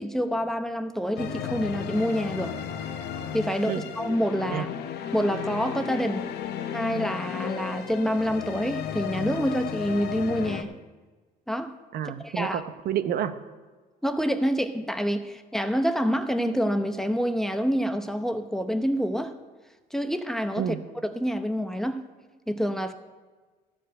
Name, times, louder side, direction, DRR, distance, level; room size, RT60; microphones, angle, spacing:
voice 1, 0.0-2.6 3.3-4.7 5.1-6.3 6.7-10.7 11.5-11.7 12.2-12.6 14.0-19.3 19.9-20.7 21.1-22.0 22.5-22.9, equal, ahead, 8 dB, 0.8 m, -27 dB
sound 1, 1.2-10.6, left 9 dB, 75° left, 1.0 m, -34 dB
voice 2, 11.9-13.3 20.6-20.8, right 9 dB, 65° right, 11 dB, 0.8 m, -29 dB
13.5 x 5.1 x 9.0 m, 1.3 s
cardioid pair, 110°, 17 cm